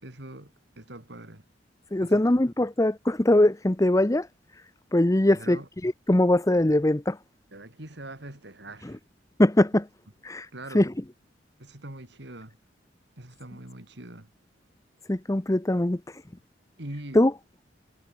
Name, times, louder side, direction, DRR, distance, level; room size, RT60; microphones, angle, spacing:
voice 1, 0.0-1.4 2.0-2.2 5.3-5.6 7.5-9.0 10.5-10.9 11.6-12.6 13.2-14.3 16.8-17.2, right 1 dB, 65° right, 3.3 m, -42 dB
voice 2, 1.9-4.3 4.9-7.2 8.8-9.0 9.4-9.9 10.2-10.5 10.7-10.9 15.1-16.2 17.1-17.3, left 1 dB, 15° left, 0.8 m, -22 dB
head